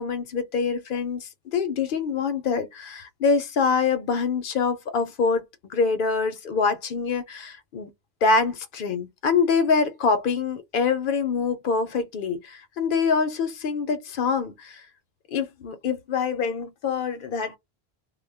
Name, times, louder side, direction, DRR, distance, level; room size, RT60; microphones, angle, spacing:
voice 1, 0.0-7.9 8.2-14.8 15.3-17.6, left 5 dB, 60° left, 0.7 m, -25 dB
2.2 x 2.2 x 3.3 m
omnidirectional pair, 1.1 m